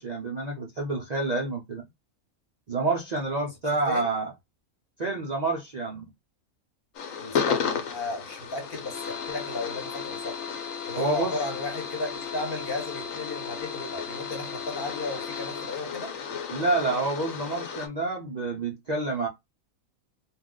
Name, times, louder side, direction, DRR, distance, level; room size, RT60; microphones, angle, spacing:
voice 1, 0.0-1.8 2.7-4.3 5.0-6.0 11.0-11.4 16.5-19.3, right 3 dB, 85° right, 0.3 m, -28 dB
sound 1, 6.9-17.9, left 6 dB, 70° left, 1.1 m, -33 dB
voice 2, 7.2-10.4 10.9-16.1, left 2 dB, 45° left, 1.1 m, -34 dB
2.5 x 2.3 x 3.6 m
omnidirectional pair, 1.5 m